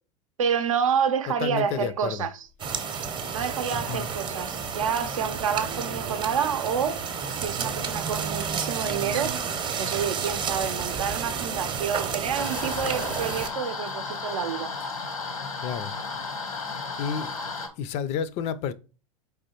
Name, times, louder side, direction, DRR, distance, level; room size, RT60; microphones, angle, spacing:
voice 1, 0.4-2.5 3.3-7.0 7.3-9.4 9.8-14.7, right 7 dB, 70° right, 0.6 m, -28 dB
voice 2, 1.4-2.3 3.7-4.1 15.6-15.9 16.5-16.6 17.0-17.4 17.8-18.7, left 7 dB, 40° left, 0.4 m, -31 dB
sound 1, 2.6-13.5, right 6 dB, 25° right, 0.7 m, -31 dB
sound 2, 12.4-17.7, left 4 dB, 85° left, 1.0 m, -34 dB
4.8 x 3.3 x 2.8 m
figure-of-eight pair, 90°, 17 cm